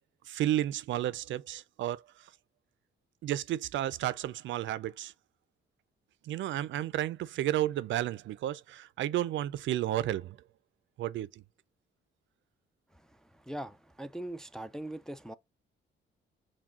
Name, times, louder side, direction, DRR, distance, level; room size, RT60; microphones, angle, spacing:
voice 1, 0.3-2.0 3.2-5.1 6.2-10.4 11.0-11.3, right 13 dB, 70° right, 0.5 m, -32 dB
voice 2, 13.5-15.3, right 1 dB, 5° left, 0.3 m, -40 dB
6.0 x 2.3 x 3.6 m
cardioid pair, 90°, 20 cm